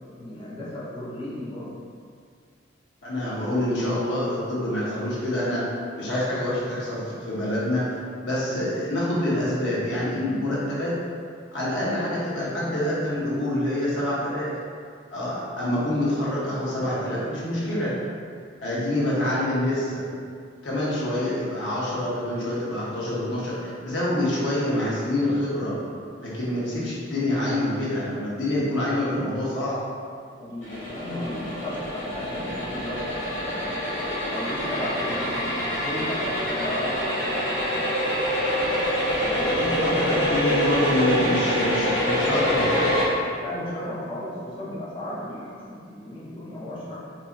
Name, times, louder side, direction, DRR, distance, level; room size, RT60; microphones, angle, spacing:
voice 1, 0.1-1.8 30.4-33.7 34.3-35.4 35.8-37.5 39.1-40.4 43.4-47.0, left 1 dB, 25° left, -9 dB, 0.8 m, -34 dB
voice 2, 3.0-5.7 6.0-8.0 8.2-11.0 11.5-14.6 15.1-17.9 18.6-20.0 20.6-29.8 39.6-43.0, left 1 dB, 70° left, -7 dB, 0.9 m, -26 dB
sound 1, 30.6-43.1, equal, 90° left, 1.2 m, -26 dB
4.1 x 2.6 x 2.5 m, 2.2 s
head